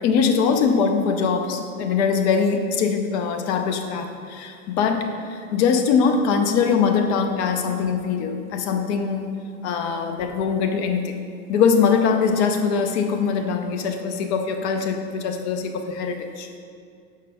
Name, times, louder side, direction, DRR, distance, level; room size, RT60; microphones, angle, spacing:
voice 1, 0.0-9.3 9.6-11.1 11.5-16.5, left 6 dB, 50° left, 6 dB, 0.8 m, -22 dB
6.8 x 4.9 x 3.4 m, 2.3 s
hypercardioid pair, 115°, 42 cm